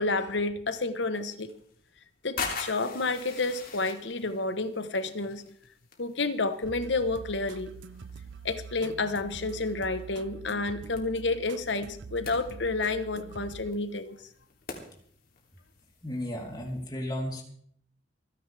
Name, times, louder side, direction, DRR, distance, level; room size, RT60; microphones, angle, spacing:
voice 1, 0.0-1.5 2.2-5.4 6.0-7.7 8.4-14.2, left 3 dB, 80° left, 11 dB, 1.3 m, -30 dB
sound 1, 1.0-16.9, left 5 dB, 55° left, 3.1 m, -45 dB
sound 2, 6.6-13.7, right 5 dB, 85° right, 0.6 m, -45 dB
voice 2, 16.0-17.4, left 1 dB, 25° left, -1 dB, 3.7 m, -34 dB
27.5 x 10.5 x 3.5 m, 0.62 s
head